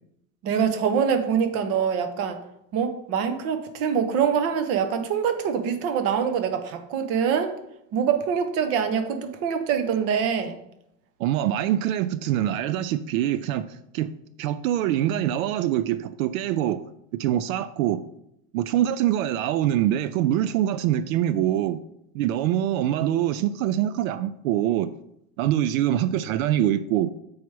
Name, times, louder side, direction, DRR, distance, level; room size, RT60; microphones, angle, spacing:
voice 1, 0.4-2.4 2.7-7.6 7.9-10.6, right 7 dB, 35° right, 8 dB, 0.8 m, -24 dB
voice 2, 11.2-14.1 14.4-16.8 17.1-18.0 18.5-21.8 22.1-24.9 25.4-27.1, right 12 dB, 75° right, 14 dB, 0.5 m, -24 dB
7.0 x 4.7 x 4.7 m, 0.78 s
supercardioid pair, 165°, 41 cm